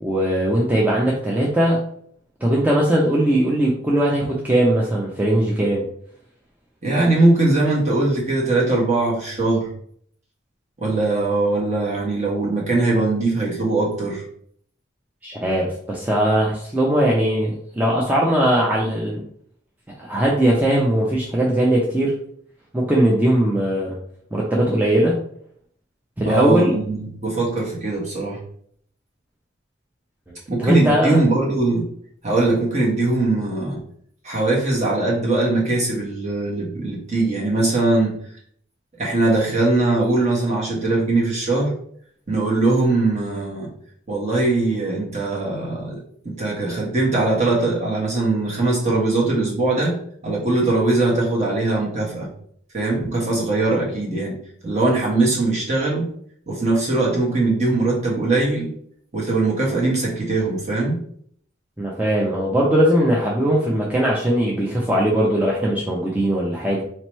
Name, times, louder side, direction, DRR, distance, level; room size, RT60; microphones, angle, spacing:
voice 1, 0.0-1.8 2.4-5.8 15.2-19.2 20.0-22.1 22.7-24.0 24.3-25.2 26.2-26.7 30.6-31.2 61.8-66.8, right 1 dB, 10° right, -4 dB, 0.5 m, -19 dB
voice 2, 6.8-9.7 10.8-14.2 26.2-28.4 30.5-31.9 32.2-33.8 34.2-38.2 39.0-41.7 42.3-43.7 44.1-46.0 46.2-49.9 50.2-52.3 52.7-54.4 54.6-56.1 56.5-58.7 59.1-61.0, right 2 dB, 35° right, -3 dB, 1.2 m, -21 dB
4.4 x 2.9 x 3.0 m, 0.64 s
head